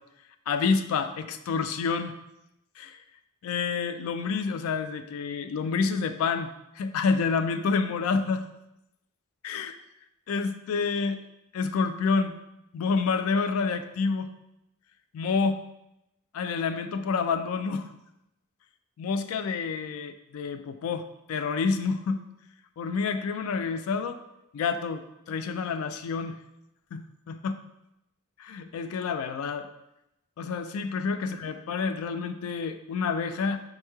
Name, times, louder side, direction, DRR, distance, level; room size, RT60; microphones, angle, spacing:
voice 1, 0.5-2.2 2.8-3.0 3.4-8.5 9.4-9.7 10.3-11.2 11.5-12.4 12.7-14.3 15.1-15.6 16.3-17.9 19.0-22.3 22.8-24.2 24.5-26.4 26.9-27.5 28.4-29.7 30.4-33.6, left 5 dB, 80° left, 12 dB, 0.3 m, -28 dB
5.4 x 2.9 x 2.2 m, 0.86 s
head